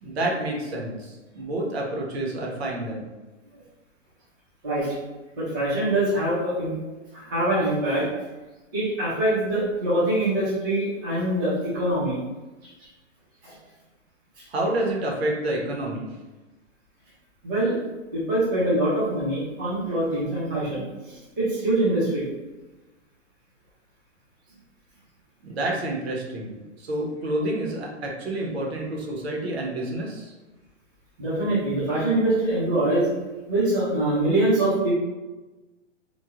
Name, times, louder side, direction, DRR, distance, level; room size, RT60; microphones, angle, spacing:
voice 1, 0.0-3.1 14.5-16.1 25.4-30.3, right 1 dB, 55° right, -1 dB, 0.7 m, -29 dB
voice 2, 4.6-4.9 5.3-6.7 7.1-8.1 8.7-12.2 13.4-13.5 14.4-14.5 17.4-17.8 18.1-22.2 31.2-33.1 33.5-34.9, right 1 dB, 15° right, -12 dB, 0.4 m, -24 dB
3.0 x 2.1 x 2.3 m, 1.1 s
hypercardioid pair, 175°, 37 cm